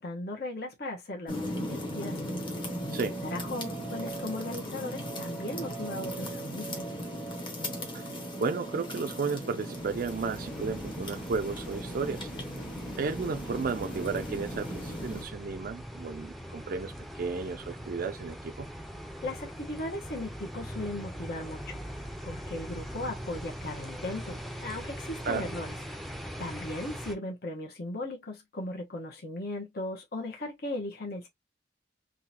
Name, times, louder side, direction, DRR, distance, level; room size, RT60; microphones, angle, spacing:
voice 1, 0.0-2.2 2.9-6.9 19.2-21.8 22.2-25.8 26.4-31.3, left 2 dB, 60° left, 1.2 m, -37 dB
sound 1, 1.3-15.2, equal, 25° left, 1.1 m, -37 dB
voice 2, 8.4-12.3 13.0-18.7 25.2-25.5, right 4 dB, 50° right, 0.4 m, -33 dB
sound 2, 9.7-27.2, equal, ahead, 0.6 m, -41 dB
3.8 x 2.6 x 2.8 m
head